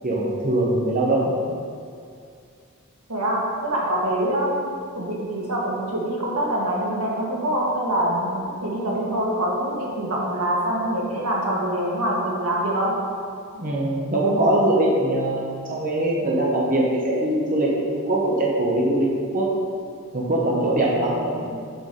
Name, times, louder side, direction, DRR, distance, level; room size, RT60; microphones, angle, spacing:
voice 1, 0.0-1.3 13.5-19.4 20.1-21.7, right 1 dB, 40° right, -4 dB, 1.0 m, -22 dB
voice 2, 3.1-13.0, right 1 dB, 85° right, -4 dB, 1.9 m, -25 dB
7.8 x 4.7 x 5.3 m, 2.3 s
head